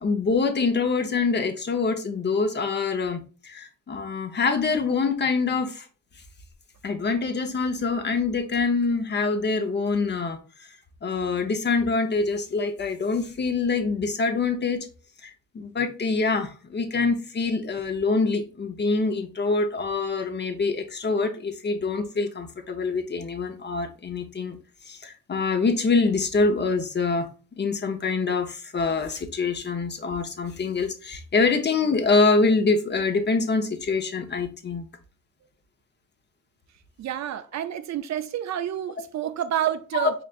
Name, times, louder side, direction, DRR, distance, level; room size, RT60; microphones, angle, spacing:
voice 1, 0.0-5.9 6.8-10.7 11.0-14.9 15.2-24.6 24.9-27.3 27.6-34.8 39.9-40.1, left 4 dB, 35° left, 0.8 m, -25 dB
voice 2, 37.0-40.1, right 11 dB, 55° right, 0.5 m, -29 dB
4.9 x 3.3 x 2.4 m
cardioid pair, 80°, 32 cm